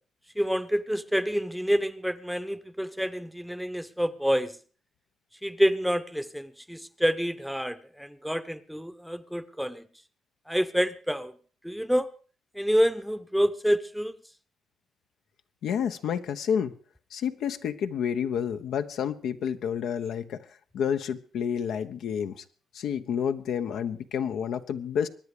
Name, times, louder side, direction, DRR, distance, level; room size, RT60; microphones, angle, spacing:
voice 1, 0.3-4.6 5.4-9.9 10.5-11.3 11.6-12.1 12.5-14.1, equal, ahead, 0.8 m, -27 dB
voice 2, 15.6-16.7 17.1-20.4 20.7-22.4 22.7-25.1, left 8 dB, 75° left, 1.0 m, -29 dB
23.5 x 9.8 x 5.0 m
cardioid pair, 90°, 0 cm